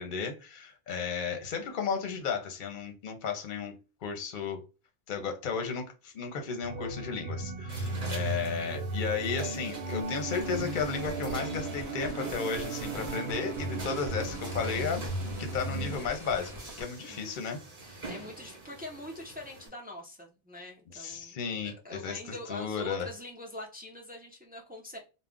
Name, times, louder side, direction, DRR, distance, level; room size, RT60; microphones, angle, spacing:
voice 1, 0.0-3.7 4.0-4.6 5.1-15.0 15.4-17.6 20.9-22.2 22.5-23.1, left 5 dB, 55° left, 0.8 m, -34 dB
sound 1, 6.6-16.0, right 2 dB, 75° right, 0.9 m, -35 dB
sound 2, 7.7-19.7, right 2 dB, 40° right, 0.9 m, -46 dB
sound 3, 10.0-16.8, equal, 25° left, 0.8 m, -45 dB
voice 2, 17.8-25.0, left 2 dB, 15° right, 0.4 m, -44 dB
2.3 x 2.1 x 3.6 m
omnidirectional pair, 1.0 m